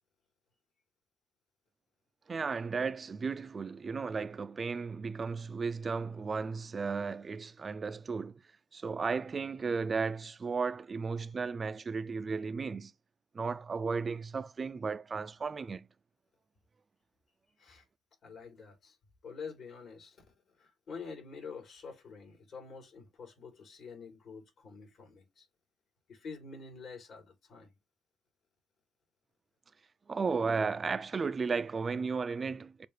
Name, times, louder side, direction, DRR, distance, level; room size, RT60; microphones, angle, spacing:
voice 1, 2.3-8.4 8.7-12.9 13.3-15.9 30.1-32.9, right 5 dB, 35° right, 0.3 m, -34 dB
voice 2, 18.2-19.0 19.2-20.3 20.6-25.5 26.1-27.7, left 5 dB, 65° left, 3.4 m, -47 dB
6.6 x 2.4 x 3.1 m
cardioid pair, 90°, 0 cm